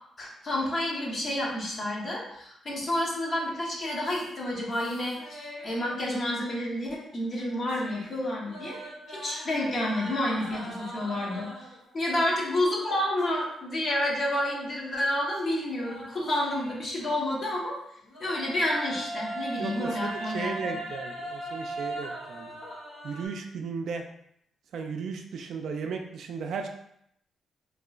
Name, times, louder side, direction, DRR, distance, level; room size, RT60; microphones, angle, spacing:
voice 1, 0.2-8.8 9.1-11.5 11.9-17.8 18.2-20.7, left 1 dB, 45° left, -3 dB, 0.9 m, -29 dB
sound 1, 4.0-6.9 7.2-11.9 12.6-13.7 14.0-14.1 15.4-17.6 18.1-23.3, right 1 dB, 75° left, 0.9 m, -40 dB
voice 2, 19.6-22.5 23.0-24.1 24.7-26.7, right 5 dB, 70° right, 4 dB, 0.3 m, -35 dB
3.0 x 2.9 x 2.3 m, 0.73 s
cardioid pair, 105°, 0 cm